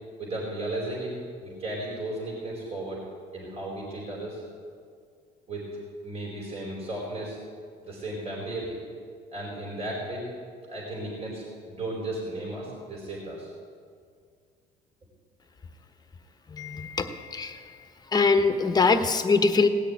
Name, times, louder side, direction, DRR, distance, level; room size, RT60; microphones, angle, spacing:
voice 1, 0.2-3.0 3.3-4.4 5.5-5.7 6.0-7.4 7.8-8.8 9.3-10.2 10.7-13.5, right 1 dB, 40° right, -4 dB, 4.6 m, -35 dB
voice 2, 16.5-17.6 18.1-19.7, left 4 dB, 25° left, 7 dB, 1.2 m, -23 dB
18.0 x 6.7 x 9.5 m, 2.1 s
cardioid pair, 110°, 17 cm